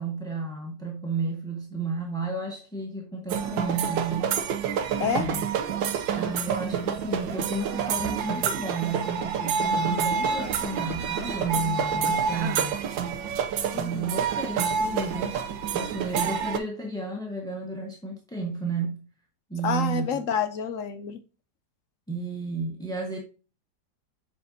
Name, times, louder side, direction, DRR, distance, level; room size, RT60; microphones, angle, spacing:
voice 1, 0.0-4.3 5.2-5.5 6.1-12.8 13.7-15.4 15.7-19.0 19.5-20.0 22.1-23.2, right 3 dB, 5° left, 0.6 m, -32 dB
sound 1, 3.3-16.6, right 7 dB, 90° right, 1.4 m, -28 dB
voice 2, 5.0-5.3 13.7-14.2 19.6-21.2, left 7 dB, 70° left, 0.7 m, -29 dB
7.3 x 5.1 x 2.7 m
omnidirectional pair, 2.0 m